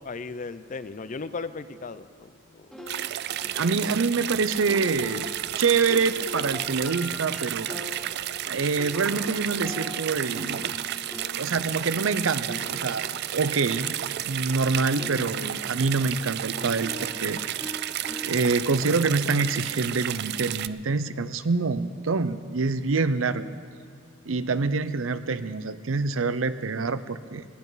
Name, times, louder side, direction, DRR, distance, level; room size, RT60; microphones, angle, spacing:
voice 1, 0.0-2.8 3.4-3.8, left 4 dB, 40° left, 14 dB, 0.5 m, -37 dB
sound 1, 2.7-14.7 15.0-20.2, left 1 dB, 5° left, 1.8 m, -43 dB
sound 2, 2.9-20.7, right 12 dB, 55° right, 0.3 m, -32 dB
voice 2, 3.5-5.2 5.6-7.7 8.5-10.7 11.3-13.0 13.3-13.9 14.3-17.4 17.7-17.8 18.2-23.5 24.3-27.4, right 4 dB, 85° right, 12 dB, 0.7 m, -26 dB
20.0 x 17.0 x 4.0 m, 2.3 s
head